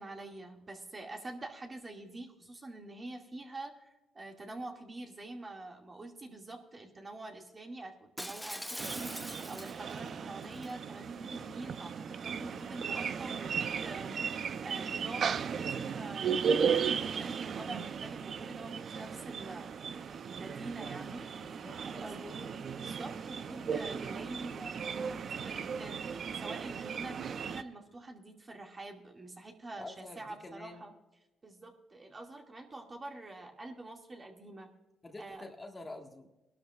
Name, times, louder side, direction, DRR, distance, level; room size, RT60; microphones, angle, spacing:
voice 1, 0.0-21.3 22.0-30.9 31.4-34.7 35.2-35.4, right 2 dB, 30° right, 2 dB, 2.1 m, -46 dB
Shatter, 8.2-10.0 10.4-10.7, equal, ahead, 0.6 m, -42 dB
sound 1, 8.8-27.6, right 6 dB, 55° right, 0.5 m, -36 dB
voice 2, 21.4-22.5 29.8-30.8 35.0-36.3, left 2 dB, 25° left, 3 dB, 1.6 m, -48 dB
21.5 x 12.0 x 2.4 m, 1.0 s
cardioid pair, 90°, 0 cm